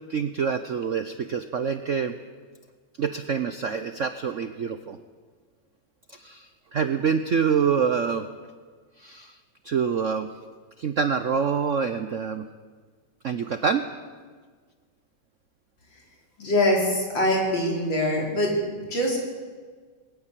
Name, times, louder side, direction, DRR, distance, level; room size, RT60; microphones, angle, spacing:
voice 1, 0.1-2.1 3.0-5.0 6.1-8.3 9.0-9.4 9.6-10.3 10.8-12.4 13.2-13.8, right 6 dB, 60° right, 9 dB, 0.8 m, -26 dB
voice 2, 16.4-18.6 18.9-19.2, left 1 dB, 65° left, -1 dB, 5.2 m, -23 dB
20.5 x 19.0 x 7.6 m, 1.5 s
omnidirectional pair, 2.2 m